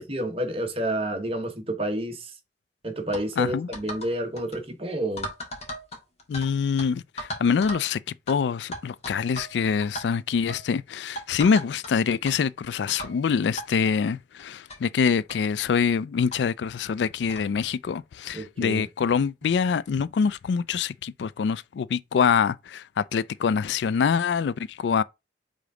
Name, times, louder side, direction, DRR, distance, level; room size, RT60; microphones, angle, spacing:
voice 1, 0.0-2.3 2.8-5.3 18.3-18.8, right 1 dB, 35° right, 1.3 m, -29 dB
sound 1, 3.1-3.3 3.7-4.1 4.4-4.6 5.2-6.5 6.8-6.9 7.2-7.9 8.3-8.4 8.7-9.5 9.8-10.0 10.5-10.7 11.2-11.9 12.2-12.4 13.0-13.2 13.6-13.7 14.4-14.5 14.7-14.8 15.3-15.4 16.3-16.4 17.3-17.5, equal, 40° left, 1.9 m, -36 dB
voice 2, 3.4-3.7 6.3-8.0 8.3-25.0, left 6 dB, 75° left, 0.3 m, -25 dB
5.1 x 3.8 x 4.9 m
head